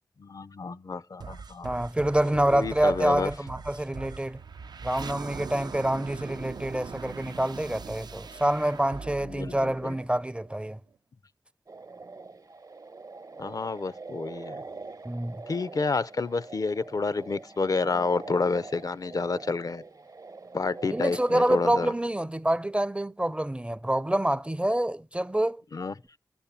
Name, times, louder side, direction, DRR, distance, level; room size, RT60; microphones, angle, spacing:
voice 1, 0.2-1.7 2.2-3.3 9.2-10.0 13.4-14.6 15.5-19.8 20.5-21.9 25.7-25.9, left 4 dB, 60° left, 0.5 m, -29 dB
sound 1, 1.2-10.5, right 5 dB, 80° right, 0.5 m, -41 dB
voice 2, 1.6-4.4 4.8-10.8 15.0-15.4 20.9-25.6, right 1 dB, 15° right, 0.5 m, -27 dB
sound 2, 11.7-21.6, right 3 dB, 60° right, 0.9 m, -44 dB
11.5 x 7.0 x 7.1 m
cardioid pair, 40°, 7 cm